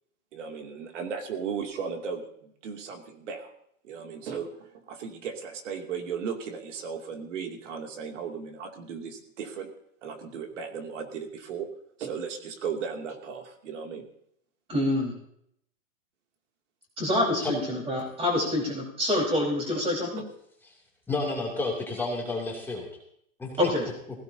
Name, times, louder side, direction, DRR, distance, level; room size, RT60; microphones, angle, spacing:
voice 1, 0.3-3.5 3.8-9.7 10.0-11.7 12.0-14.1 19.7-19.8, right 6 dB, 60° right, 4 dB, 2.7 m, -36 dB
voice 2, 14.7-15.1 17.0-20.2 23.6-23.8, left 1 dB, 15° right, -1 dB, 4.6 m, -26 dB
voice 3, 21.1-22.9 23.4-23.7, left 3 dB, 5° left, -2 dB, 2.7 m, -31 dB
20.5 x 16.5 x 2.8 m, 0.71 s
hypercardioid pair, 150°, 40 cm